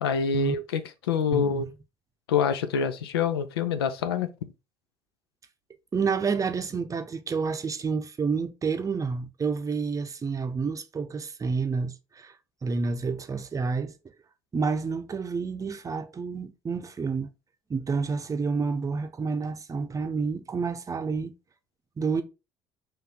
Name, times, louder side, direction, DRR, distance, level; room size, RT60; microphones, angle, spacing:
voice 1, 0.0-1.7 2.3-4.3, left 6 dB, 80° left, 0.4 m, -26 dB
voice 2, 1.3-1.7 5.9-12.3 12.6-13.9 14.5-17.3 17.7-21.3 22.0-22.2, right 5 dB, 25° right, 0.6 m, -29 dB
4.1 x 2.7 x 3.5 m
hypercardioid pair, 60°, 13 cm